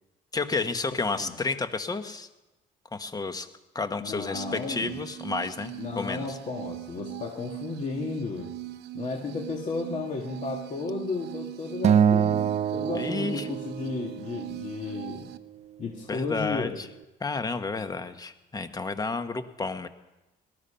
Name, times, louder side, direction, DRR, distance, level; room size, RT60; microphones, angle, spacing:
voice 1, 0.3-2.3 2.9-3.5 3.7-6.4 12.9-13.4 16.1-16.7 17.2-19.9, left 3 dB, 20° left, 9 dB, 1.2 m, -31 dB
voice 2, 4.0-5.0 5.8-8.5 8.9-15.3 15.8-16.8, left 4 dB, 45° left, 0 dB, 1.9 m, -34 dB
sound 1, 4.3-15.4, right 17 dB, 80° right, 0.7 m, -40 dB
Acoustic guitar, 11.8-14.2, right 8 dB, 40° right, 0.5 m, -24 dB
19.0 x 13.0 x 5.7 m, 1.0 s
cardioid pair, 110°, 17 cm